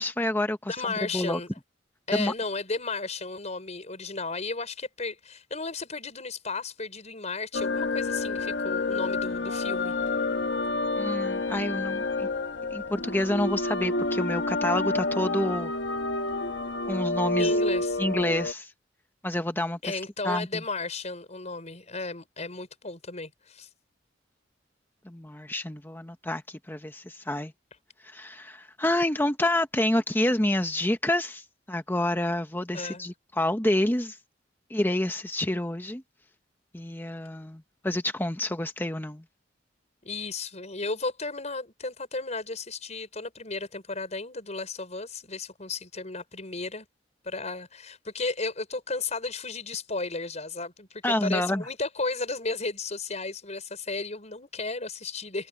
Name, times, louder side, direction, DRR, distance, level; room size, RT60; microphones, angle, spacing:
voice 1, 0.0-1.4 2.1-2.3 11.0-12.3 12.7-15.7 16.9-17.6 18.0-18.7 19.2-19.9 20.2-20.6 25.0-27.5 28.0-34.2 34.7-36.0 36.7-39.2 51.0-51.7, left 1 dB, 10° left, 1.0 m, -28 dB
voice 2, 0.7-1.5 2.1-9.9 17.4-18.0 19.8-23.7 32.7-33.1 40.0-46.9 47.2-55.5, left 3 dB, 40° left, 5.5 m, -34 dB
sound 1, 7.5-18.5, left 2 dB, 70° left, 1.1 m, -29 dB
head